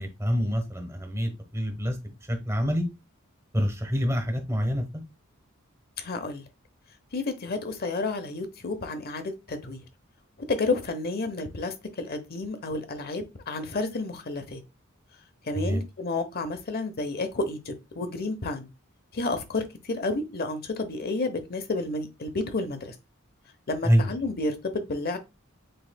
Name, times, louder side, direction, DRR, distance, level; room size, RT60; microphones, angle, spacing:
voice 1, 0.0-2.0 2.3-2.9 3.5-4.8 15.5-15.8 23.8-24.1, equal, 15° right, 1.1 m, -26 dB
voice 2, 6.0-6.4 7.1-9.8 10.5-14.6 15.4-18.7 19.1-22.9 23.7-25.2, left 3 dB, 45° left, 0.9 m, -31 dB
7.8 x 3.1 x 2.2 m
head